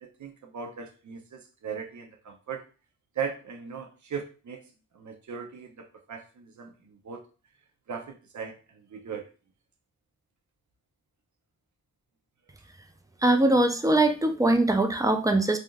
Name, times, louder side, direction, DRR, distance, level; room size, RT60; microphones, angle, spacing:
voice 1, 0.0-2.6 3.1-4.6 4.9-7.2 7.9-9.3, right 6 dB, 65° right, 4 dB, 0.7 m, -38 dB
voice 2, 13.2-15.6, right 2 dB, 10° right, 5 dB, 0.5 m, -22 dB
3.5 x 2.6 x 2.3 m, 0.35 s
cardioid pair, 50°, 31 cm